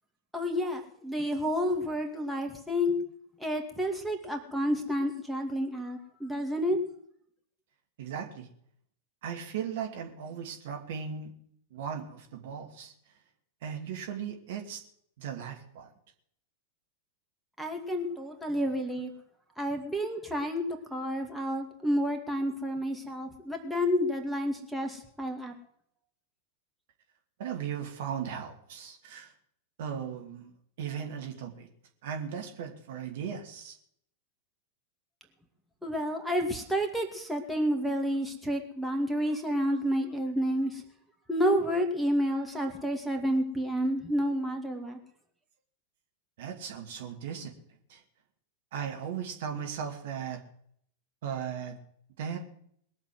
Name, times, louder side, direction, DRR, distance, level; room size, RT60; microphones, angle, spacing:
voice 1, 0.3-3.0 3.4-6.8 17.6-19.1 19.6-20.6 20.9-25.5 35.8-40.8 41.3-45.0, equal, ahead, 4 dB, 2.5 m, -30 dB
voice 2, 8.0-8.5 9.2-11.3 11.7-12.9 13.6-14.8 15.2-15.9 27.4-29.3 29.8-30.5 30.8-31.7 32.0-33.8 46.4-47.5 47.9-48.0 48.7-50.4 51.2-51.8 52.2-52.4, right 8 dB, 55° right, 2 dB, 2.6 m, -37 dB
21.0 x 7.3 x 8.0 m, 0.68 s
figure-of-eight pair, 90°, 0 cm